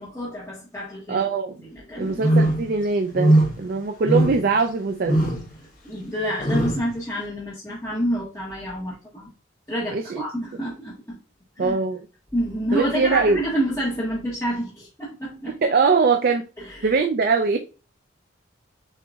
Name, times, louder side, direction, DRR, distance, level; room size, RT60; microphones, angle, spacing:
voice 1, 0.0-1.2 1.6-2.5 5.8-9.3 9.7-11.2 11.6-11.8 12.3-15.6 16.6-17.0, equal, 15° left, 1.4 m, -28 dB
voice 2, 1.1-1.5 2.0-5.2 9.9-10.2 11.6-12.0 12.7-13.4 15.5-16.5 16.8-17.6, right 4 dB, 45° right, 0.4 m, -22 dB
sound 1, 2.2-2.7 3.1-3.6 4.0-4.5 5.1-5.4 6.4-6.8, right 1 dB, 40° left, 1.2 m, -19 dB
7.1 x 2.9 x 2.3 m
head